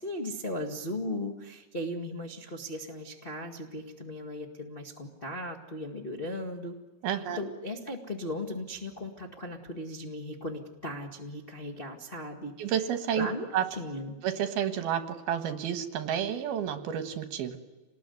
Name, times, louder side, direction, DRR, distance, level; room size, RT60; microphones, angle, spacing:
voice 1, 0.0-6.7 7.2-12.5 13.1-14.2, left 1 dB, 45° left, 1 dB, 0.7 m, -37 dB
voice 2, 7.0-7.4 12.6-13.3 13.5-13.6 14.2-15.0 15.3-17.6, right 9 dB, 70° right, 8 dB, 3.1 m, -30 dB
27.5 x 20.0 x 9.6 m, 1.2 s
omnidirectional pair, 4.9 m